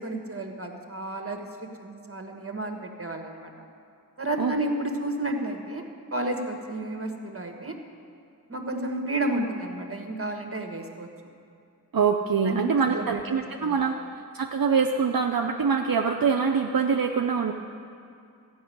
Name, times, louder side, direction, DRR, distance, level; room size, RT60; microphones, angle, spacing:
voice 1, 0.0-1.5 1.8-3.5 4.2-5.8 6.1-7.7 8.5-11.1 12.4-12.6 12.9-13.2 13.6-13.9, right 1 dB, 35° right, 3 dB, 1.6 m, -31 dB
voice 2, 11.9-13.9 14.3-17.5, right 6 dB, 65° right, 3 dB, 0.7 m, -24 dB
13.5 x 6.3 x 9.3 m, 2.5 s
wide cardioid pair, 40°, 36 cm